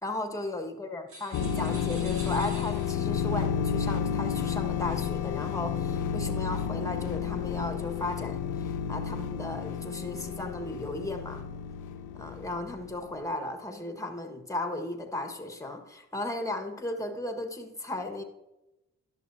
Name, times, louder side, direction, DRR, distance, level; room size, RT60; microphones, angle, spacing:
voice 1, 0.0-11.4 12.1-18.2, left 1 dB, 10° left, 5 dB, 1.5 m, -35 dB
sound 1, 1.1-3.2, right 2 dB, 70° right, 2.5 m, -46 dB
sound 2, 1.3-13.0, left 8 dB, 65° left, 0.7 m, -31 dB
11.0 x 6.6 x 2.7 m, 0.96 s
supercardioid pair, 45°, 33 cm